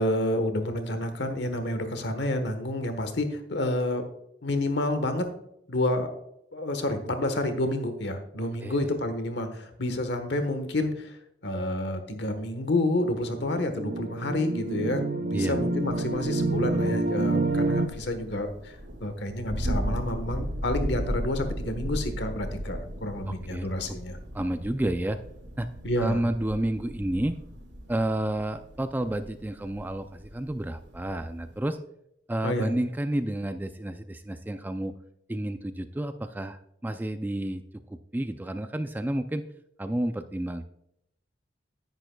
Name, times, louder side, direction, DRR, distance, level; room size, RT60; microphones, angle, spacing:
voice 1, 0.0-4.0 4.4-5.3 5.7-6.1 6.5-11.1 11.4-18.7 19.0-24.2 25.8-26.2 32.4-32.7, left 1 dB, 65° left, 8 dB, 1.2 m, -29 dB
sound 1, 13.1-17.9, right 2 dB, 50° right, 0.6 m, -28 dB
Thunder, 15.8-31.6, equal, 70° right, 1.8 m, -36 dB
voice 2, 23.3-23.9 24.3-25.2 25.6-25.7 26.0-27.4 27.9-31.8 32.3-34.9 35.3-37.6 37.9-39.4 39.8-40.6, right 1 dB, 10° right, 8 dB, 0.3 m, -30 dB
10.5 x 10.5 x 2.3 m, 0.77 s
head